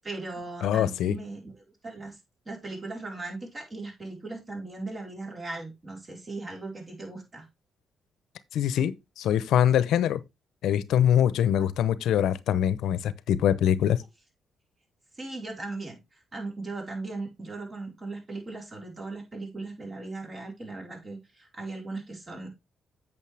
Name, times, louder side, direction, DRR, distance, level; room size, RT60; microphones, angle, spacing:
voice 1, 0.0-2.2 2.5-7.5 11.6-11.7 15.1-22.5, right 3 dB, 30° right, 4.5 m, -38 dB
voice 2, 0.6-1.2 8.5-10.2 10.6-14.0, left 10 dB, 80° left, 0.8 m, -24 dB
8.5 x 7.0 x 3.4 m
cardioid pair, 90°, 0 cm